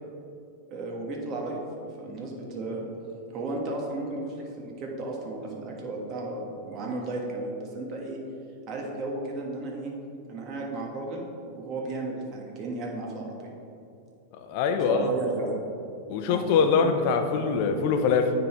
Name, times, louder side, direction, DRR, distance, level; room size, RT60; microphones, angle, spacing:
voice 1, 0.7-2.9 3.3-8.2 8.7-9.9 10.3-13.5 14.9-15.7 16.3-16.5, right 2 dB, 40° right, -1 dB, 1.5 m, -34 dB
voice 2, 14.3-15.1 16.1-18.3, left 5 dB, 55° left, 7 dB, 0.7 m, -23 dB
9.2 x 4.0 x 4.4 m, 2.6 s
hypercardioid pair, 125°, 0 cm